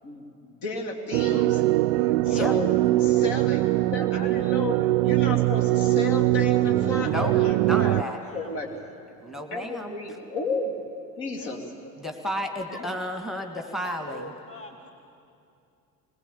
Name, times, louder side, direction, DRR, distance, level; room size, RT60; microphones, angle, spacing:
voice 1, 0.0-1.6 2.0-8.7 9.5-10.7 11.2-11.6 12.7-12.9, left 3 dB, 55° left, 3 dB, 3.1 m, -33 dB
sound 1, 1.1-8.0, right 17 dB, 50° right, 0.5 m, -22 dB
voice 2, 2.2-2.6 7.0-8.2 9.2-9.9 12.0-14.3, equal, ahead, 4 dB, 1.9 m, -32 dB
voice 3, 8.1-8.6 11.3-11.6 12.7-12.8 13.8-14.9, left 2 dB, 25° left, 2 dB, 1.7 m, -43 dB
21.0 x 21.0 x 8.5 m, 2.6 s
figure-of-eight pair, 60°, 49 cm